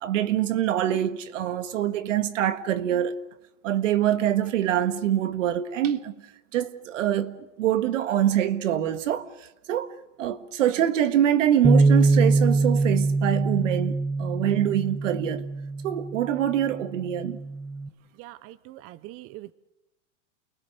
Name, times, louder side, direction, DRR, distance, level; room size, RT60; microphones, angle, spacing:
voice 1, 0.0-3.2 3.6-6.1 6.5-9.3 9.7-15.5 15.8-17.4, right 11 dB, 80° right, 1.7 m, -25 dB
Bass guitar, 11.6-17.9, right 3 dB, 10° right, 1.5 m, -23 dB
voice 2, 18.2-19.5, right 16 dB, 40° right, 0.8 m, -43 dB
29.0 x 19.5 x 6.7 m
supercardioid pair, 125°, 37 cm